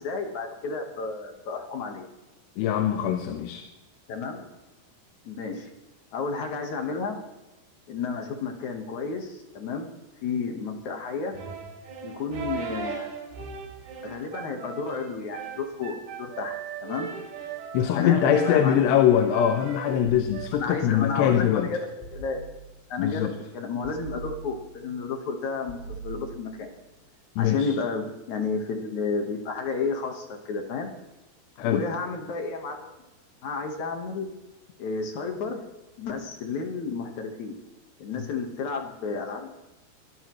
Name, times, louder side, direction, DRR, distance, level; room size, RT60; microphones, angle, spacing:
voice 1, 0.0-2.1 4.1-4.5 5.2-5.7 6.1-7.2 7.9-9.9 10.2-11.3 12.0-13.1 14.0-16.6 16.8-17.1 17.9-19.0 20.5-22.4 22.9-23.3 23.5-26.7 27.4-30.9 31.6-32.9 33.4-34.3 34.8-35.6 36.0-37.6 38.0-39.5, left 4 dB, 60° left, 4 dB, 2.1 m, -31 dB
voice 2, 2.6-3.6 17.7-21.7 23.0-23.3 27.4-27.7 31.6-31.8, left 10 dB, 80° left, 6 dB, 3.0 m, -23 dB
sound 1, 11.3-20.5, right 6 dB, 80° right, 5.1 m, -38 dB
sound 2, 20.1-21.1 22.0-22.9 23.8-24.9 25.7-26.7, right 4 dB, 10° left, 4.5 m, -42 dB
23.5 x 13.0 x 3.1 m, 1.0 s
omnidirectional pair, 4.9 m